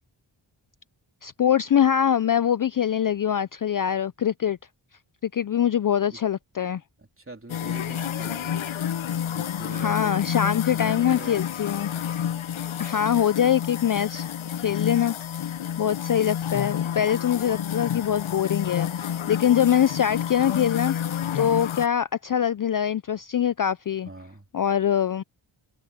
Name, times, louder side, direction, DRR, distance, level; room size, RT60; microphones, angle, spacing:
voice 1, 1.2-4.6 5.3-6.8 9.7-11.9 12.8-14.3 14.6-15.5 15.8-24.1 24.5-25.2, left 9 dB, 45° left, 0.4 m, -23 dB
voice 2, 7.0-8.7 9.3-10.2 10.4-11.4 14.5-15.0 24.1-24.5, right 2 dB, 25° right, 3.4 m, -43 dB
sound 1, 7.5-21.9, left 9 dB, 70° left, 0.8 m, -30 dB
wide cardioid pair, 60°, 49 cm